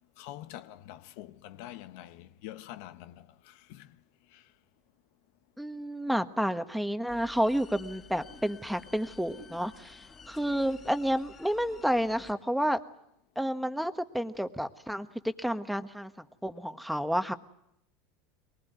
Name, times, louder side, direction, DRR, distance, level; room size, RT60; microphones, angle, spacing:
voice 1, 0.2-3.9 4.3-4.4, left 13 dB, 70° left, 0.9 m, -46 dB
voice 2, 5.6-12.8 13.3-16.1 16.4-17.3, equal, ahead, 1.3 m, -30 dB
sound 1, 7.1-12.3, left 5 dB, 35° left, 3.9 m, -51 dB
23.0 x 19.5 x 9.4 m
hypercardioid pair, 100°, 0 cm